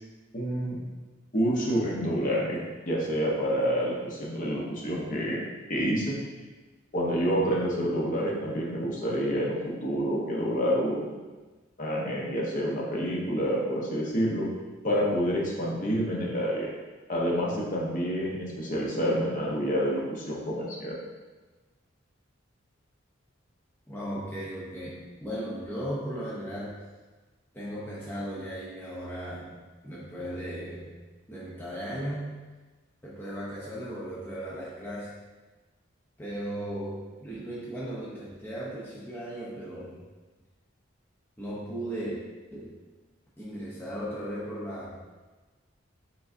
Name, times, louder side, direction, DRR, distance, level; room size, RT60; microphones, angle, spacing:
voice 1, 0.3-0.8 1.3-2.6 2.8-5.4 5.7-6.2 6.9-11.1 11.8-14.5 14.8-16.7 17.1-20.9, equal, 40° left, -3 dB, 0.8 m, -28 dB
voice 2, 23.9-26.7 27.5-31.0 31.3-32.4 33.0-35.1 36.2-40.1 41.4-42.2 42.5-42.8 43.4-45.0, equal, 10° left, -7 dB, 0.6 m, -36 dB
4.8 x 3.8 x 2.5 m, 1.3 s
head